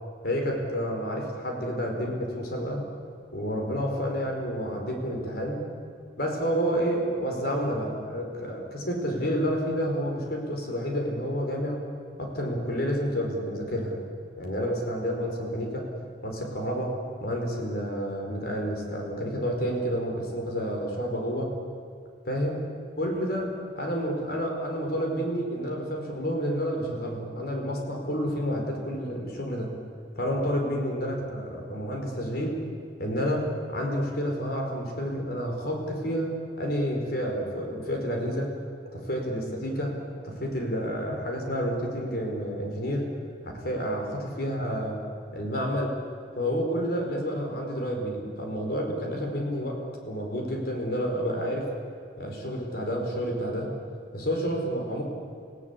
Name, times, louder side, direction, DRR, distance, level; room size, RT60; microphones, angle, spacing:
voice 1, 0.2-2.8 3.3-5.6 6.2-11.8 12.2-14.0 14.4-15.9 16.2-21.5 22.3-22.6 23.0-23.5 23.8-29.7 30.2-32.6 33.0-38.5 38.9-39.9 40.2-43.1 43.5-45.0 45.3-46.0 46.3-49.8 50.0-51.7 52.2-53.7 54.1-55.0, equal, 60° left, 1 dB, 4.8 m, -29 dB
27.5 x 17.5 x 8.4 m, 2.3 s
head